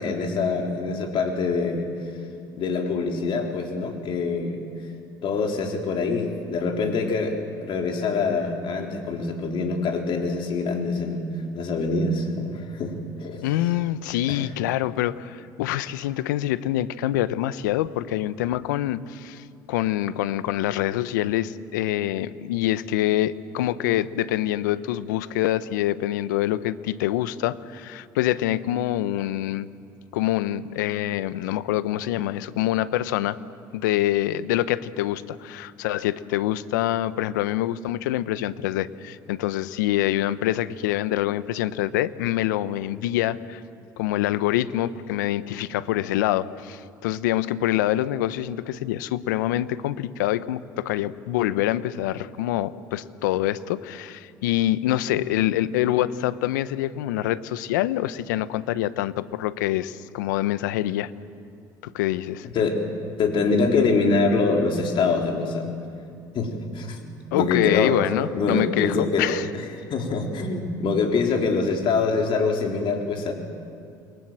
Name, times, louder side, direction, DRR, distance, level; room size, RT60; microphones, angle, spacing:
voice 1, 0.0-1.9 2.6-4.6 5.2-7.3 7.6-11.2 11.5-13.5 14.3-14.5 62.5-62.8 63.2-65.7 66.3-67.1 67.3-67.9 68.4-73.3, left 4 dB, 60° left, 2 dB, 3.9 m, -24 dB
voice 2, 13.4-29.7 30.1-33.4 33.7-43.6 44.0-61.1 61.8-62.5 67.3-69.5, left 13 dB, 85° left, 15 dB, 0.9 m, -25 dB
28.5 x 23.0 x 7.6 m, 2.4 s
hypercardioid pair, 60°, 10 cm